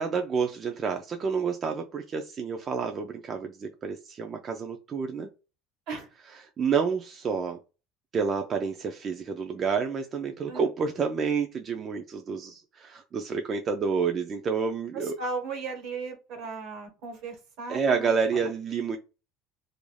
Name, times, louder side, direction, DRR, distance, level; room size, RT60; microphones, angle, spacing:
voice 1, 0.0-5.3 6.6-7.6 8.1-15.2 17.7-19.0, right 5 dB, 30° right, 0.3 m, -29 dB
voice 2, 14.9-18.5, right 4 dB, 70° right, 1.1 m, -36 dB
2.4 x 2.2 x 3.2 m
cardioid pair, 150°, 0 cm